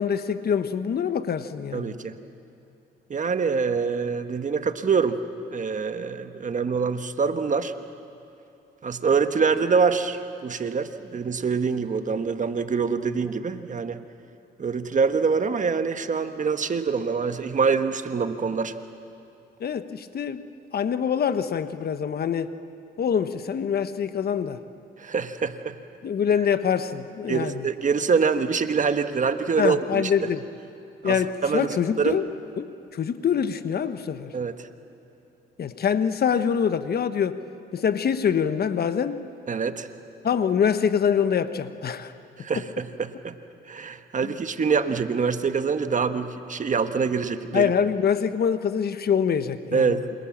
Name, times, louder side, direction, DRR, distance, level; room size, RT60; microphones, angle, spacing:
voice 1, 0.0-1.9 19.6-20.4 20.7-22.5 23.0-24.6 26.0-27.6 29.6-30.5 31.0-32.3 32.6-34.3 35.6-37.4 37.7-39.2 40.2-42.1 44.2-44.3 47.5-50.0, left 7 dB, 50° left, 11 dB, 1.2 m, -25 dB
voice 2, 1.7-2.1 3.1-5.2 5.5-7.7 8.8-14.0 14.6-18.7 25.0-25.7 27.3-30.1 31.0-31.7 32.0-32.2 34.3-34.5 39.5-39.9 42.4-43.3 43.7-47.7 49.7-50.0, right 5 dB, 40° right, 9 dB, 1.4 m, -25 dB
28.0 x 26.0 x 7.4 m, 2.9 s
cardioid pair, 90°, 20 cm